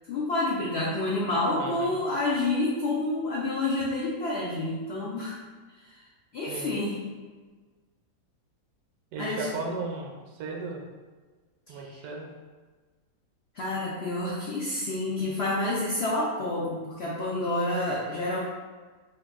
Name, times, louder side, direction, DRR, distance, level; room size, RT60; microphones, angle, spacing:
voice 1, 0.1-5.3 5.8-6.0 6.3-7.0 9.2-9.5 11.7-12.0 13.5-18.4, left 2 dB, 90° left, -5 dB, 0.5 m, -29 dB
voice 2, 1.6-2.0 6.5-6.8 9.1-10.8 11.7-12.3, right 4 dB, 75° right, 0 dB, 1.0 m, -36 dB
2.8 x 2.3 x 3.4 m, 1.4 s
omnidirectional pair, 1.7 m